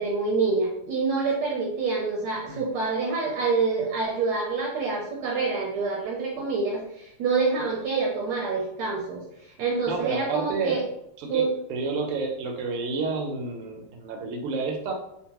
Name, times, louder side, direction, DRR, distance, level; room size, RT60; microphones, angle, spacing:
voice 1, 0.0-9.2 9.6-10.8 11.3-11.5, right 4 dB, 70° right, -1 dB, 1.1 m, -26 dB
voice 2, 9.9-10.8 11.2-14.9, right 4 dB, 85° right, 2 dB, 1.6 m, -30 dB
3.7 x 2.2 x 2.8 m, 0.82 s
omnidirectional pair, 2.4 m